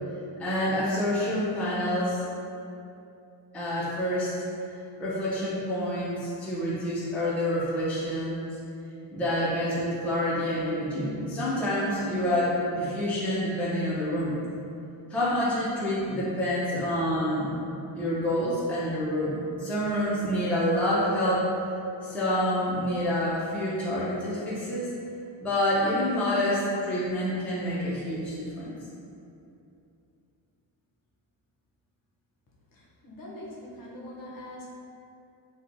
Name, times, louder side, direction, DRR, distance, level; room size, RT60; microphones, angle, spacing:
voice 1, 0.4-2.2 3.5-4.3 5.0-8.4 9.1-14.4 15.1-17.5 18.0-21.5 22.0-24.9 25.4-28.8, left 1 dB, 5° left, -9 dB, 0.4 m, -27 dB
voice 2, 32.7-34.7, left 1 dB, 45° left, -4 dB, 0.6 m, -43 dB
2.8 x 2.3 x 2.5 m, 2.7 s
cardioid pair, 95°, 48 cm